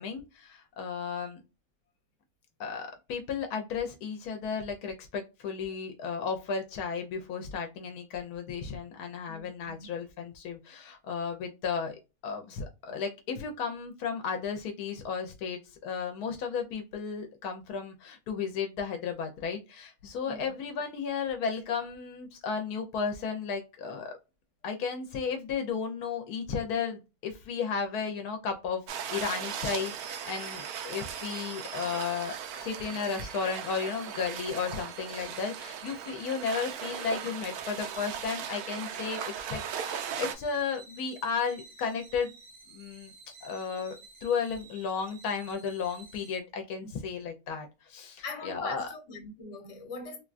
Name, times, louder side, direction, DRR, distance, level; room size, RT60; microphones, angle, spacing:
voice 1, 0.0-1.4 2.6-24.1 24.6-28.8 29.1-42.3 42.7-43.1 43.4-48.9, left 6 dB, 85° left, 1.1 m, -34 dB
voice 2, 9.3-9.9 20.3-20.5 46.8-46.9 48.2-50.2, left 3 dB, 55° left, 1.3 m, -41 dB
sound 1, 28.9-40.4, right 8 dB, 80° right, 1.1 m, -38 dB
sound 2, 29.5-46.4, right 4 dB, 50° right, 0.9 m, -51 dB
3.5 x 2.2 x 2.4 m
omnidirectional pair, 1.6 m